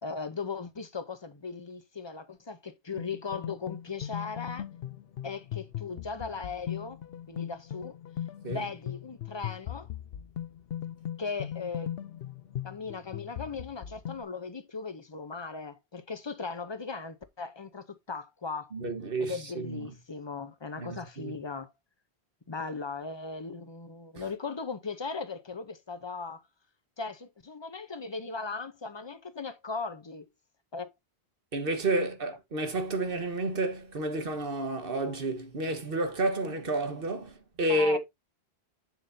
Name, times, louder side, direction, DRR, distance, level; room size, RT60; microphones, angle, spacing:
voice 1, 0.0-4.6 5.2-7.0 7.3-8.0 8.5-9.9 11.2-11.9 12.6-18.7 19.2-21.7 22.5-26.4 27.0-30.3 30.7-30.9 32.0-32.1 37.7-38.0, left 4 dB, 30° left, 0.8 m, -38 dB
sound 1, 3.0-14.2, left 11 dB, 70° left, 0.8 m, -39 dB
voice 2, 18.7-19.9 20.8-21.3 31.5-38.0, right 2 dB, 60° right, 1.6 m, -30 dB
7.3 x 7.2 x 2.7 m
omnidirectional pair, 1.1 m